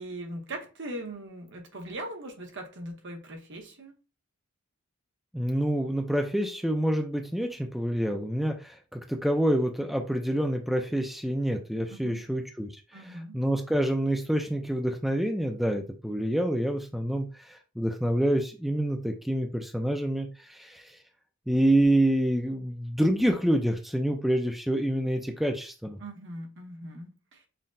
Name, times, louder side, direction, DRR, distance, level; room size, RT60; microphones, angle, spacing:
voice 1, 0.0-3.9 11.9-12.2 12.9-13.4 26.0-27.4, right 1 dB, 60° right, 0.9 m, -40 dB
voice 2, 5.3-21.0 21.5-26.0, right 1 dB, ahead, 0.3 m, -27 dB
5.6 x 2.1 x 2.6 m
head